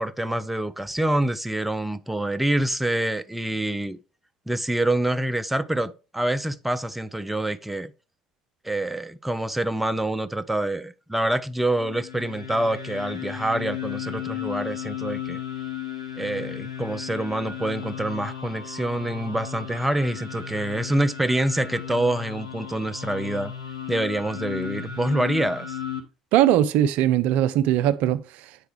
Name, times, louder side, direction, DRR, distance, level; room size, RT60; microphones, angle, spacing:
voice 1, 0.0-4.0 4.5-7.9 8.6-15.4 16.2-23.5 23.9-25.8, right 1 dB, 5° right, 0.5 m, -26 dB
sound 1, 11.7-26.0, left 9 dB, 80° left, 1.0 m, -35 dB
voice 2, 26.3-28.6, right 11 dB, 55° right, 0.4 m, -20 dB
8.8 x 4.6 x 3.3 m
figure-of-eight pair, 60°, 3 cm